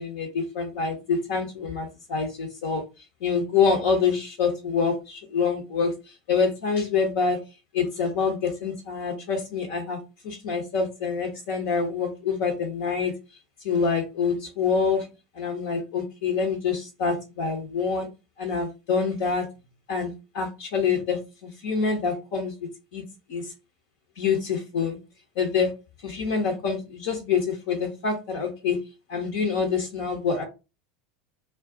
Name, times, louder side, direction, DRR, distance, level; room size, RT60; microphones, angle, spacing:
voice 1, 0.0-2.8 3.2-7.4 7.7-10.0 10.2-13.1 13.6-15.1 15.3-18.1 18.4-19.5 19.9-23.5 24.2-25.0 25.4-25.7 26.0-28.8 29.1-30.4, left 5 dB, 60° left, 0.7 m, -26 dB
2.3 x 2.3 x 3.6 m
figure-of-eight pair, 80°, 0 cm